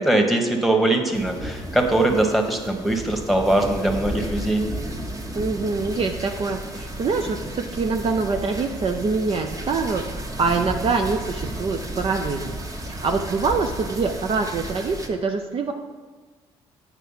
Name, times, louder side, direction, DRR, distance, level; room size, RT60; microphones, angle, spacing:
voice 1, 0.0-4.6, right 1 dB, ahead, 3 dB, 1.4 m, -21 dB
sound 1, 1.1-15.1, right 1 dB, 25° right, 1.3 m, -33 dB
voice 2, 5.3-12.6 12.8-15.7, right 4 dB, 45° right, 4 dB, 0.6 m, -25 dB
8.3 x 4.6 x 5.7 m, 1.4 s
hypercardioid pair, 60°, 13 cm